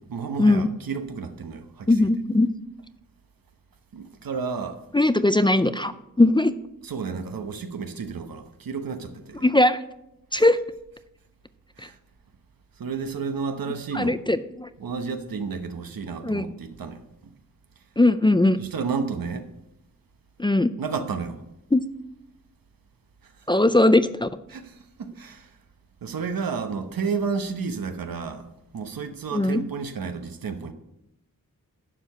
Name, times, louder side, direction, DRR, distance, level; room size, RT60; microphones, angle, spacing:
voice 1, 0.0-2.1 3.9-4.8 6.8-9.4 10.3-10.5 11.8-12.0 12.8-14.2 14.8-17.0 18.6-19.5 20.8-21.4 23.2-23.3 24.5-25.5 26.0-28.5 28.7-30.7, right 5 dB, 85° right, 1.0 m, -31 dB
voice 2, 1.9-2.5 4.9-5.9 6.2-6.5 9.4-9.8 10.3-10.6 13.9-14.7 16.2-16.4 18.0-18.6 20.4-20.7 21.7-21.8 23.5-24.3 29.3-29.6, left 2 dB, 15° left, 0.4 m, -19 dB
11.5 x 4.7 x 6.7 m
wide cardioid pair, 115°, 34 cm